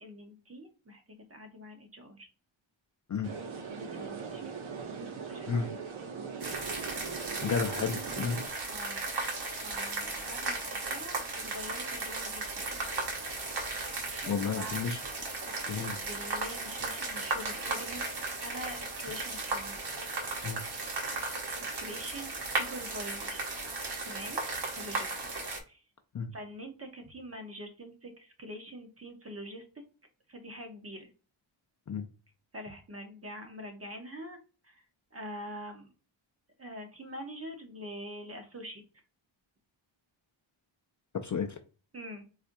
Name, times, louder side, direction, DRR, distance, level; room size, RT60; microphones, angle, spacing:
voice 1, 0.0-2.3 3.8-4.6 5.3-5.9 8.7-9.3 9.6-12.8 14.1-14.8 15.4-18.0 18.4-19.8 21.6-23.4 24.0-24.4 24.7-25.1 25.7-25.8 26.3-29.7 30.3-31.1 32.5-34.4 34.6-34.8 35.1-35.9 36.6-38.8 41.9-42.2, equal, 30° right, 0.8 m, -45 dB
sound 1, 3.2-8.5, right 5 dB, 75° right, 0.8 m, -40 dB
sound 2, 6.4-25.6, right 3 dB, 55° right, 1.0 m, -36 dB
voice 2, 7.4-8.4 14.3-15.0 15.7-16.0 20.4-20.6 26.1-26.3 31.9-32.1 41.2-41.6, left 6 dB, 40° left, 0.4 m, -32 dB
4.3 x 2.4 x 2.6 m
wide cardioid pair, 135°, 49 cm